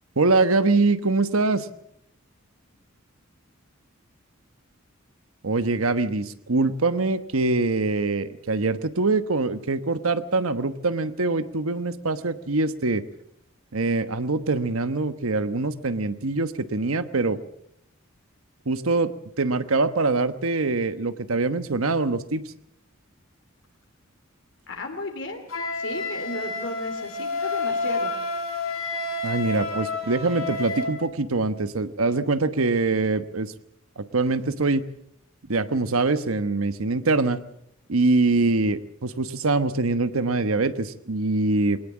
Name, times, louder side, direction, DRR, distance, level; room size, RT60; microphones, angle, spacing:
voice 1, 0.2-1.7 5.4-13.0 13.7-17.4 18.7-22.4 29.2-33.5 34.0-34.9 35.5-37.4 37.9-41.8, right 3 dB, 90° right, 12 dB, 1.1 m, -24 dB
voice 2, 24.7-25.4 25.7-28.1, left 2 dB, 60° left, 4 dB, 2.7 m, -34 dB
Wind instrument woodwind instrument, 25.5-30.9, left 2 dB, 85° left, 6.7 m, -29 dB
21.0 x 19.0 x 7.3 m, 0.73 s
head